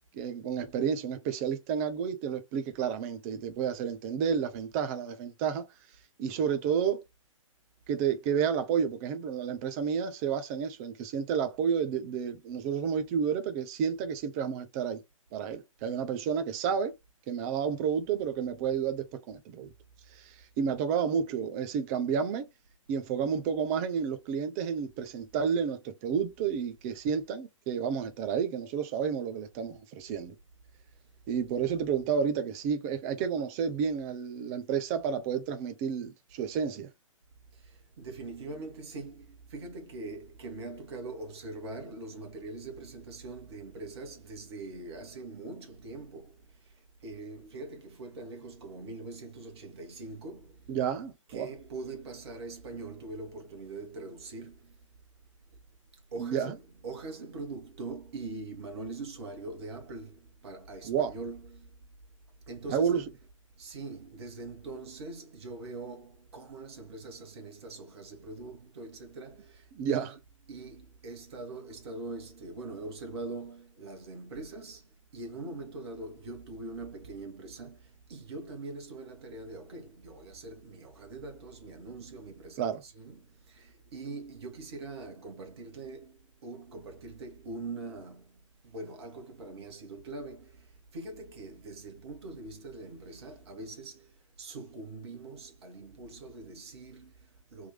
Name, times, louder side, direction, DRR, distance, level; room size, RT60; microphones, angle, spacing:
voice 1, 0.1-5.6 6.2-7.0 7.9-15.0 15.3-16.9 17.3-19.7 20.2-22.4 22.9-30.3 31.3-36.9 50.7-51.5 56.2-56.5 60.8-61.1 62.7-63.0 69.7-70.1 82.6-82.8, right 7 dB, 30° right, 0.8 m, -30 dB
voice 2, 37.5-50.7 51.3-54.8 56.1-61.8 62.5-63.1 63.6-70.2 70.5-97.7, right 3 dB, 50° right, 1.8 m, -43 dB
3.7 x 3.0 x 3.2 m
figure-of-eight pair, 125°, 17 cm